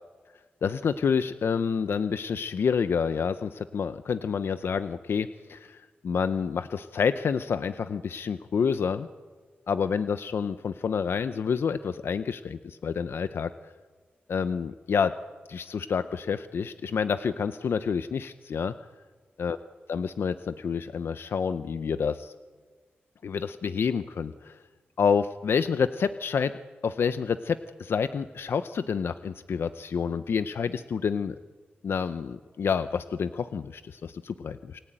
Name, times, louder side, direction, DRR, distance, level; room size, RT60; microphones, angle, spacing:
voice 1, 0.6-9.1 9.7-13.5 14.3-15.1 15.5-18.7 19.4-19.6 19.9-22.3 23.2-24.6 25.0-26.5 26.8-31.4 31.8-34.8, left 6 dB, 70° left, 12 dB, 0.7 m, -28 dB
28.0 x 18.0 x 9.0 m, 1.5 s
wide cardioid pair, 125°, 4 cm